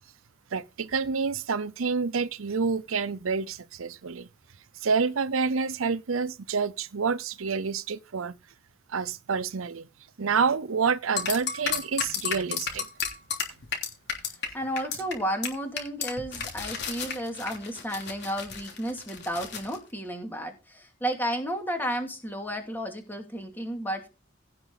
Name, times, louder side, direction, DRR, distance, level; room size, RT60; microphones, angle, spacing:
voice 1, 0.5-4.3 4.8-8.3 8.9-9.9 10.2-12.9, right 5 dB, 80° right, 0.6 m, -28 dB
sound 1, 11.2-14.5 14.8-15.1 15.4-15.5 15.8-19.8, left 6 dB, 55° left, 3.2 m, -32 dB
voice 2, 14.5-24.1, equal, 10° left, 2.6 m, -32 dB
16.5 x 5.9 x 4.0 m
head